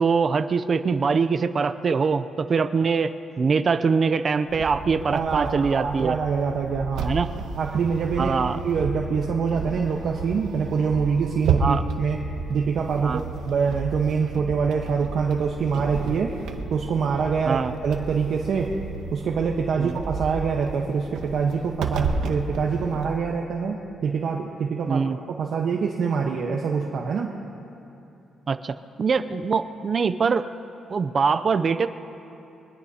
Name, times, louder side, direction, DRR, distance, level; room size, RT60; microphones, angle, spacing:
voice 1, 0.0-6.2 7.0-7.3 8.2-8.6 11.6-11.8 13.0-13.2 17.5-17.7 19.8-19.9 24.9-25.2 28.5-30.5 30.9-31.9, right 5 dB, 40° right, 11 dB, 0.5 m, -23 dB
sound 1, 4.5-23.2, right 4 dB, 85° right, 1.2 m, -32 dB
voice 2, 5.1-7.1 7.6-8.4 8.6-16.4 16.7-18.7 19.1-27.4, right 5 dB, 60° right, 0 dB, 1.1 m, -25 dB
23.5 x 20.5 x 2.8 m, 2.9 s
cardioid pair, 130°, 0 cm